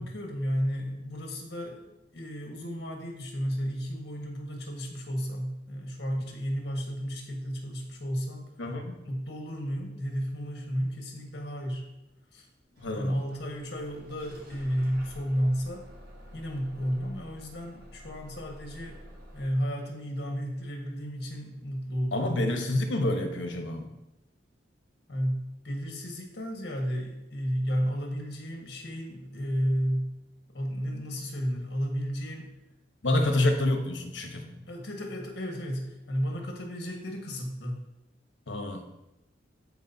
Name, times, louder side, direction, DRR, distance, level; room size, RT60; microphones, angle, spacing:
voice 1, 0.0-1.8 2.1-8.5 9.0-11.9 12.3-12.5 12.9-15.8 16.3-19.0 19.3-22.4 25.1-30.1 30.5-32.5 33.0-33.2 34.7-37.8, equal, 60° left, 0 dB, 1.6 m, -32 dB
voice 2, 8.6-9.0 12.8-13.1 22.1-23.9 33.0-34.6 38.5-38.8, left 2 dB, 80° left, 4 dB, 1.1 m, -28 dB
Bus / Engine starting, 12.7-19.5, equal, 55° right, 1.6 m, -49 dB
14.0 x 4.8 x 2.8 m, 0.95 s
head